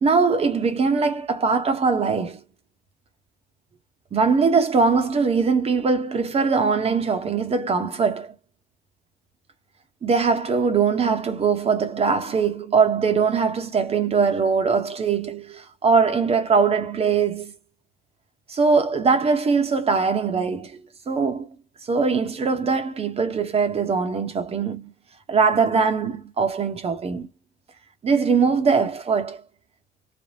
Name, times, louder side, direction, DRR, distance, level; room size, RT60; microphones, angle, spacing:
voice 1, 0.0-2.4 4.1-8.3 10.0-17.5 18.5-21.5 21.8-24.9 25.3-27.3 28.0-29.4, right 5 dB, 35° right, 0.9 m, -21 dB
3.4 x 2.1 x 2.6 m
cardioid pair, 110°, 17 cm